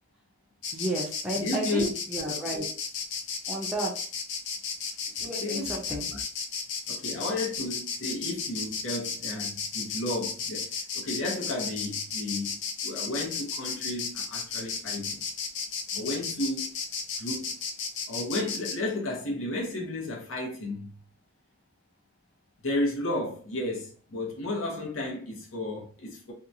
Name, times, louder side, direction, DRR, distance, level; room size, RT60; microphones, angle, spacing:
Insect, 0.6-18.8, left 5 dB, 60° left, 0.4 m, -34 dB
voice 1, 0.7-2.7 3.5-3.9 5.2-6.1, right 1 dB, 5° right, 0.4 m, -32 dB
voice 2, 1.3-1.9 5.2-6.2 6.9-12.6 12.8-15.2 15.9-16.7 17.2-17.5 18.1-20.9 22.6-26.3, left 2 dB, 90° left, 0.9 m, -33 dB
2.7 x 2.2 x 2.6 m
head